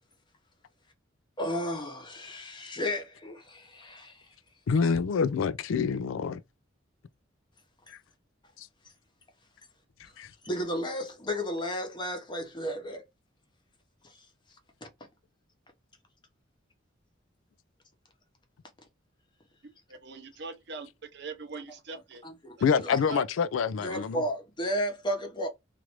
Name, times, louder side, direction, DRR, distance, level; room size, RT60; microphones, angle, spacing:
voice 1, 1.4-4.3 10.4-13.0 14.0-14.3 22.2-23.0 23.8-25.5, equal, 25° left, 0.8 m, -33 dB
voice 2, 4.7-6.4 7.9-8.0 8.6-8.7 10.2-10.3 22.6-24.2, left 6 dB, 90° left, 0.4 m, -27 dB
voice 3, 19.9-22.2 23.1-23.3, right 4 dB, 60° right, 0.7 m, -41 dB
3.1 x 2.5 x 2.9 m
head